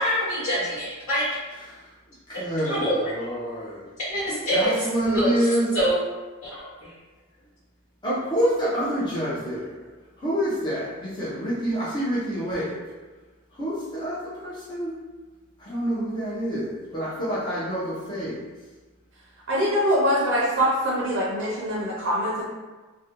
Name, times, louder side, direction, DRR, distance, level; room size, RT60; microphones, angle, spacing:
voice 1, 0.0-1.6 2.6-3.2 4.1-6.0 6.4-6.7, equal, 65° left, -14 dB, 0.8 m, -25 dB
voice 2, 2.3-3.8 4.5-5.7 8.0-9.7 10.2-12.8 13.6-14.9 15.7-18.4, equal, 20° left, -10 dB, 0.5 m, -27 dB
voice 3, 19.5-22.5, equal, 55° right, -5 dB, 0.5 m, -23 dB
2.4 x 2.1 x 2.8 m, 1.3 s
head